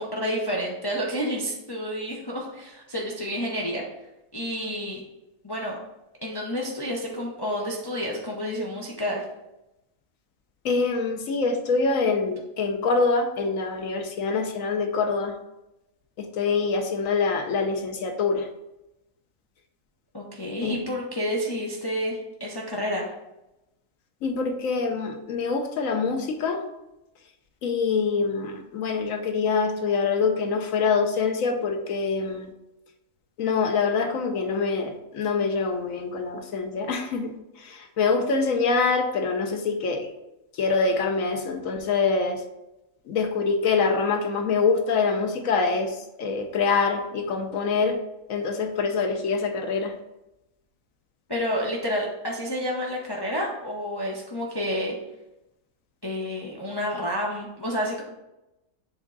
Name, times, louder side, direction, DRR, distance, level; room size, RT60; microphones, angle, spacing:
voice 1, 0.0-3.8 4.3-5.0 5.4-5.8 6.2-9.2 20.1-23.0 51.3-54.9 56.0-58.0, equal, 20° left, -3 dB, 0.7 m, -29 dB
voice 2, 10.6-15.3 16.2-18.5 20.6-20.8 24.2-26.6 27.6-32.5 33.4-40.1 40.5-42.4 43.1-48.0 48.3-49.9, left 4 dB, 75° left, 5 dB, 1.2 m, -25 dB
7.0 x 3.7 x 3.9 m, 0.94 s
omnidirectional pair, 1.4 m